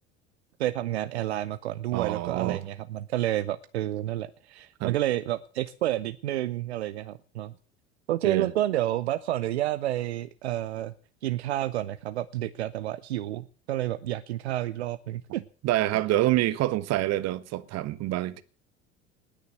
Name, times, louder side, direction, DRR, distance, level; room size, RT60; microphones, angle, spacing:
voice 1, 0.6-7.5 8.1-10.9 11.2-15.4 15.9-16.0, right 13 dB, 80° right, 0.7 m, -30 dB
voice 2, 1.9-2.6 4.8-4.9 8.2-8.5 15.6-18.4, right 16 dB, 50° right, 1.2 m, -26 dB
19.5 x 6.8 x 7.9 m
hypercardioid pair, 70°, 33 cm